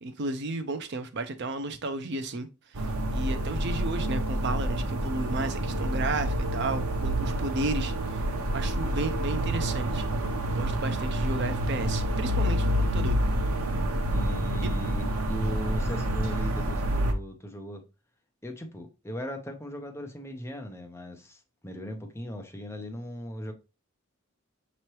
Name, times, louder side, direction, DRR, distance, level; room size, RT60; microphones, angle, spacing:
voice 1, 0.0-2.5 3.1-8.2 8.5-10.0 10.5-13.2 14.6-14.7, right 2 dB, 50° right, 0.5 m, -33 dB
sound 1, 2.7-17.1, right 1 dB, 90° right, 0.7 m, -28 dB
voice 2, 14.1-17.9 18.4-23.5, equal, 10° left, 0.6 m, -38 dB
5.7 x 3.0 x 3.0 m
head